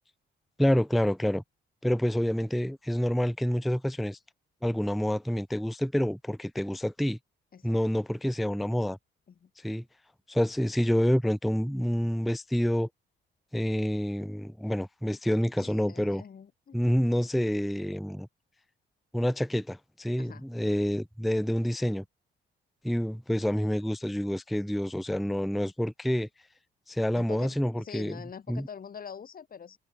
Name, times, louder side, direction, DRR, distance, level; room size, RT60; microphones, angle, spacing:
voice 1, 0.6-1.4 1.8-4.2 4.6-7.2 7.6-9.0 9.6-9.8 10.3-12.9 13.5-16.2 16.7-18.3 19.1-22.0 22.8-26.3 26.9-28.2 28.5-28.7, equal, ahead, 0.3 m, -28 dB
voice 2, 15.6-16.8 20.2-20.4 27.2-29.8, left 7 dB, 45° left, 3.9 m, -45 dB
cardioid pair, 90°, 20 cm